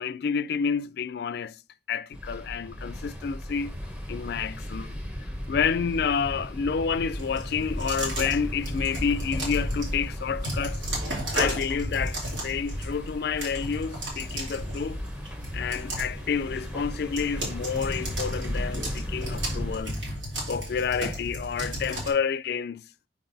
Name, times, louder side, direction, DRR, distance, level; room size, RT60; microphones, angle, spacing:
voice 1, 0.0-1.6 1.9-3.8 4.1-5.0 5.5-10.9 11.3-15.0 15.5-20.0 20.5-22.8, left 6 dB, 55° left, 0.3 m, -29 dB
sound 1, 2.1-19.8, equal, 5° right, 0.8 m, -35 dB
sound 2, 7.1-22.1, right 1 dB, 90° right, 2.8 m, -35 dB
5.8 x 4.5 x 4.0 m
head